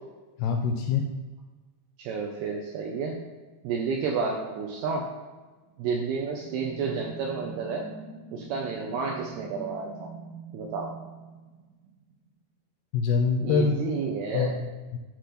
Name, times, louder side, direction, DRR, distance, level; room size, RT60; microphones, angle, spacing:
voice 1, 0.4-1.1 12.9-13.8 14.3-15.0, left 5 dB, 85° left, 4 dB, 2.3 m, -25 dB
voice 2, 2.0-3.2 3.6-5.0 5.8-7.9 8.3-10.1 10.5-10.9 13.4-14.5, right 5 dB, 80° right, 0 dB, 2.3 m, -31 dB
sound 1, 5.7-12.2, right 4 dB, 65° right, 2.3 m, -45 dB
7.6 x 3.4 x 5.8 m, 1.3 s
omnidirectional pair, 5.1 m